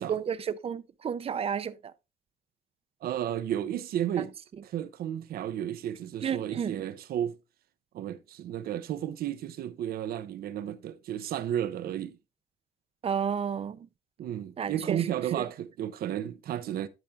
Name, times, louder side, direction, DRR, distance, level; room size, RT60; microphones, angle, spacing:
voice 1, 0.0-1.9 4.2-4.3 6.2-6.8 13.0-13.9 14.6-15.0 15.4-15.5, right 7 dB, 35° right, 0.7 m, -32 dB
voice 2, 3.0-4.3 4.6-7.4 7.9-12.2 14.2-16.9, right 10 dB, 65° right, 1.0 m, -33 dB
12.5 x 4.4 x 3.6 m
cardioid pair, 110°, 17 cm